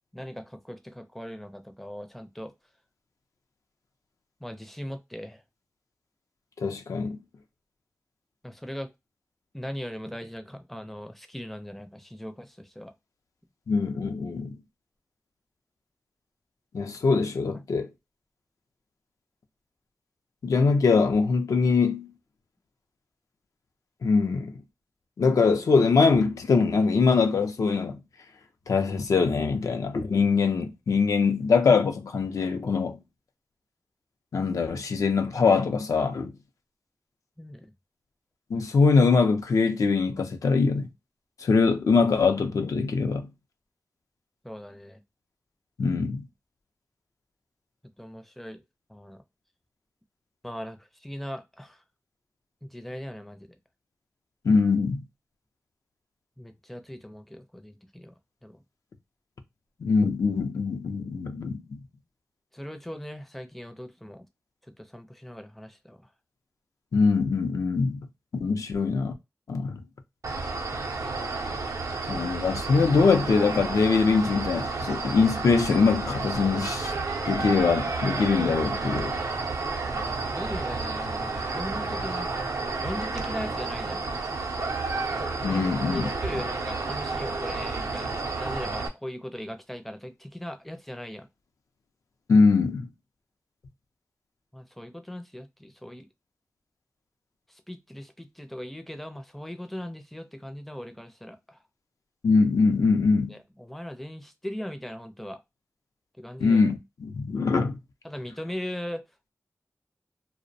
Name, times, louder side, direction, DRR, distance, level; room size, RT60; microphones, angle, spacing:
voice 1, 0.1-2.5 4.4-5.4 8.4-8.9 9.5-12.9 37.4-37.7 44.4-45.0 48.0-48.6 48.9-49.2 50.4-51.8 52.6-53.5 56.4-58.1 58.4-58.6 62.5-64.3 64.8-66.1 79.9-84.0 85.5-85.6 85.9-91.3 94.5-96.1 97.7-101.6 103.3-105.4 106.2-106.6 108.0-109.0, equal, 5° left, 0.4 m, -39 dB
voice 2, 6.6-7.2 13.7-14.6 16.7-17.9 20.4-22.1 24.0-24.6 25.2-28.0 28.7-33.0 34.3-36.3 38.5-40.9 41.4-43.3 45.8-46.2 54.4-55.0 59.8-61.8 66.9-68.1 68.4-69.1 69.5-69.8 72.1-76.9 77.3-79.2 85.4-86.1 92.3-92.9 102.2-103.4 106.4-107.8, left 4 dB, 85° left, 0.4 m, -23 dB
sound 1, 70.2-88.9, right 3 dB, 80° right, 0.5 m, -31 dB
2.5 x 2.0 x 2.6 m
wide cardioid pair, 80°, 6 cm